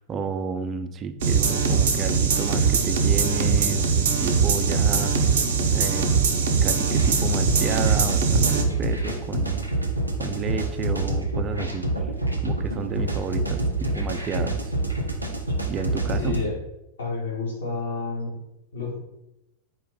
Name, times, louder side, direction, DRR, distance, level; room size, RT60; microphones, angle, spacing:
voice 1, 0.0-5.4 5.7-6.1 6.6-9.7 10.2-11.9 12.4-14.7 15.7-16.4, right 5 dB, 25° right, 9 dB, 0.3 m, -31 dB
sound 1, 1.2-8.6, right 5 dB, 60° right, 0.6 m, -21 dB
sound 2, 7.0-16.4, right 1 dB, 90° left, 0.7 m, -27 dB
voice 2, 16.2-16.6 17.0-18.4 18.7-19.0, left 3 dB, 70° left, -2 dB, 1.2 m, -30 dB
4.4 x 2.6 x 3.8 m, 0.90 s
figure-of-eight pair, 90°, 0 cm